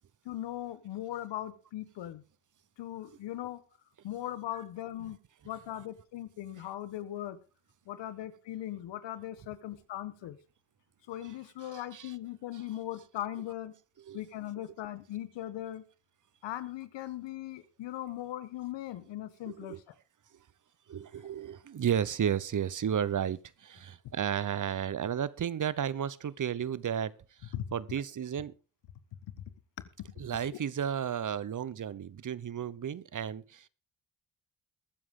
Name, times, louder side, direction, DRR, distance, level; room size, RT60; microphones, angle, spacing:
voice 1, 0.2-2.2 2.8-3.6 4.0-5.2 5.4-7.4 7.9-10.4 11.1-13.7 14.1-15.8 16.4-19.9 27.5-27.7 30.4-30.6, left 13 dB, 85° left, 1.4 m, -39 dB
voice 2, 11.6-12.1 14.1-14.2 19.5-19.8 20.9-27.1 27.7-28.5 30.2-33.7, right 8 dB, 45° right, 0.9 m, -33 dB
22.0 x 7.6 x 3.8 m
supercardioid pair, 60°, 42 cm